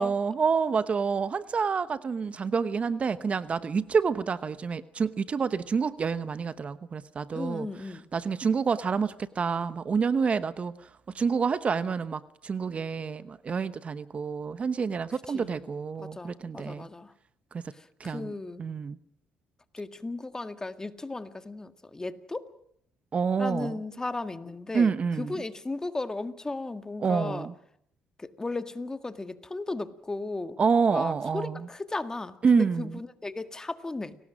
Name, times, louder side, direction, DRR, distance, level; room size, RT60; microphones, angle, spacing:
voice 1, 0.0-7.7 8.1-10.7 11.1-16.9 17.5-17.6 18.0-18.3 18.6-19.0 23.1-23.7 24.7-25.4 27.0-27.5 30.6-31.5 32.4-32.9, right 5 dB, 40° right, 14 dB, 0.9 m, -28 dB
voice 2, 7.3-8.1 15.3-15.6 16.0-17.1 17.7-18.6 19.7-22.5 23.4-27.5 28.2-30.6 30.9-34.2, left 2 dB, 20° left, 9 dB, 1.8 m, -35 dB
30.0 x 19.0 x 6.3 m, 0.70 s
supercardioid pair, 70°, 3 cm